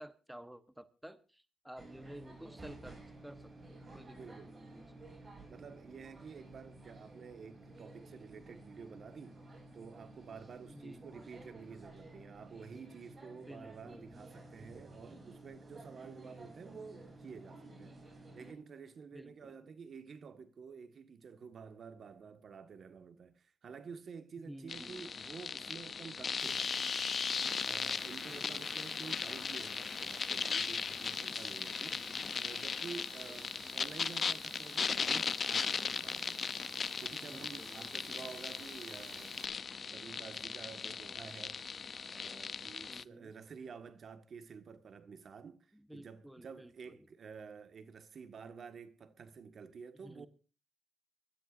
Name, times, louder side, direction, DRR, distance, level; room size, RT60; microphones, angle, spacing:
voice 1, 0.0-3.0 3.2-5.1 10.7-11.3 13.5-14.1 19.1-19.5 24.4-25.1 28.3-28.7 31.9-32.3 33.2-33.4 37.2-38.2 42.9-43.3 45.7-47.1 50.0-50.3, right 1 dB, 5° right, 1.1 m, -53 dB
sound 1, 1.8-18.5, right 2 dB, 30° right, 6.9 m, -53 dB
voice 2, 4.2-4.5 5.5-9.4 9.7-18.0 18.3-26.9 27.6-36.5 37.0-41.6 42.1-50.3, right 6 dB, 50° right, 1.6 m, -50 dB
sound 2, 24.7-43.0, left 5 dB, 40° left, 0.6 m, -38 dB
Rain, 26.4-39.5, right 9 dB, 75° right, 2.0 m, -56 dB
25.0 x 13.0 x 2.6 m
cardioid pair, 90°, 0 cm